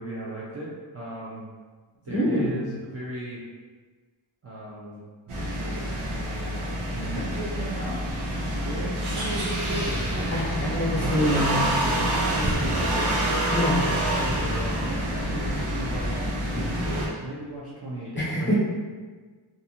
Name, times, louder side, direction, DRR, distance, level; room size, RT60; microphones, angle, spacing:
voice 1, 0.0-1.4 2.0-3.4 4.4-5.1 5.4-8.0 8.3-11.2 11.8-13.1 14.2-18.6, right 1 dB, 30° right, -7 dB, 0.4 m, -36 dB
voice 2, 2.1-2.7 10.3-11.7 13.5-13.9 18.2-18.6, equal, 25° left, -7 dB, 0.8 m, -25 dB
sound 1, 5.3-17.1, right 1 dB, 80° right, 0.8 m, -27 dB
2.5 x 2.4 x 2.8 m, 1.4 s
wide cardioid pair, 120°, 49 cm